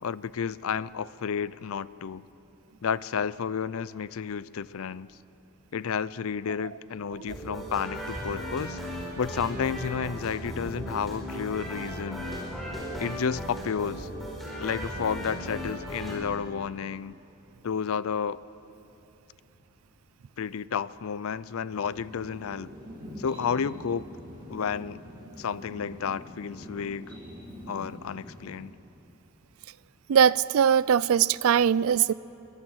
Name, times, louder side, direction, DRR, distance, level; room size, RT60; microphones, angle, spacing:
voice 1, 0.0-2.2 2.8-5.1 5.7-8.8 9.2-12.3 13.0-14.1 14.6-17.2 17.6-18.4 20.4-22.7 23.2-24.1 24.5-25.0 25.4-27.1 27.7-28.7 32.0-32.1, left 6 dB, 65° left, 19 dB, 0.4 m, -31 dB
sound 1, 7.3-16.2, equal, ahead, 4.9 m, -36 dB
sound 2, 21.7-28.6, equal, 20° right, 5.4 m, -44 dB
voice 2, 30.1-32.1, right 8 dB, 65° right, 20 dB, 0.4 m, -21 dB
22.0 x 21.0 x 6.3 m, 3.0 s
head